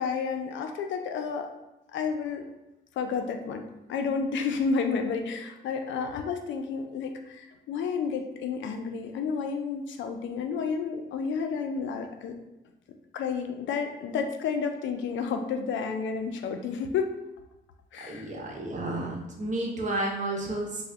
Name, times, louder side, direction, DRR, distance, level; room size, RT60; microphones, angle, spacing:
voice 1, 0.0-1.5 1.9-2.5 3.0-12.4 13.1-17.1 17.9-18.3, left 5 dB, 70° left, 5 dB, 0.4 m, -31 dB
voice 2, 18.1-20.8, right 2 dB, 40° right, -1 dB, 0.9 m, -31 dB
3.6 x 2.0 x 3.4 m, 0.96 s
cardioid pair, 90°, 20 cm